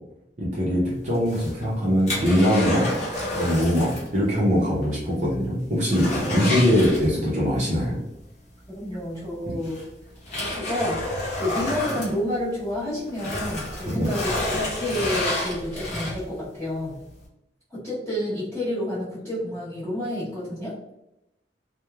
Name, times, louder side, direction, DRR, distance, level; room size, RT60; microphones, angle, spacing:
voice 1, 0.4-2.9 3.3-8.0 9.5-9.6 13.9-14.1, equal, 45° right, -6 dB, 0.6 m, -22 dB
sound 1, 1.1-4.1 4.4-4.5 5.0-5.1 5.4-7.5 8.9-9.0 9.6-12.7 13.1-16.4 16.9-17.0, left 1 dB, 45° left, 1.0 m, -29 dB
voice 2, 8.7-9.8 10.5-11.0 11.4-17.0 17.7-20.7, left 1 dB, 10° left, -15 dB, 0.9 m, -29 dB
2.9 x 2.1 x 2.3 m, 0.87 s
head